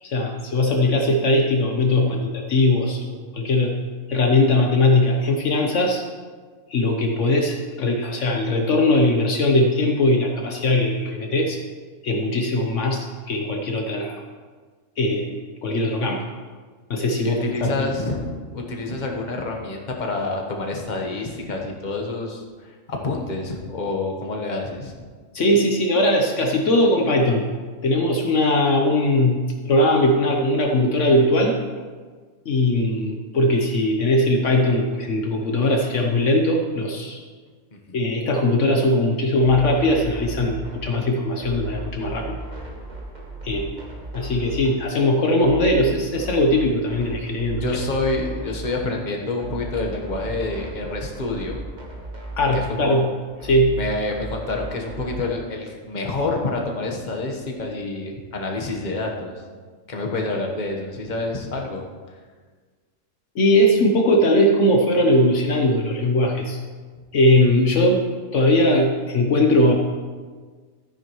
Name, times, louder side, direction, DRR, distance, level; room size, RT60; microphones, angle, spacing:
voice 1, 0.0-3.7 4.1-6.0 6.7-11.6 12.0-14.2 15.0-16.2 16.9-17.4 17.8-17.9 25.3-27.4 27.8-31.5 32.4-37.2 37.9-42.3 43.4-43.8 44.1-47.8 52.4-53.1 53.4-53.7 63.3-66.6 67.1-68.0 68.3-69.7, left 1 dB, 70° left, 2 dB, 1.2 m, -20 dB
voice 2, 17.2-24.9 37.7-38.1 47.6-51.6 52.5-53.0 53.8-59.3 59.9-61.9, left 2 dB, 35° left, 1 dB, 1.3 m, -28 dB
sound 1, 39.4-55.4, right 2 dB, 35° right, 1.4 m, -36 dB
13.0 x 9.8 x 3.1 m, 1.5 s
omnidirectional pair, 1.3 m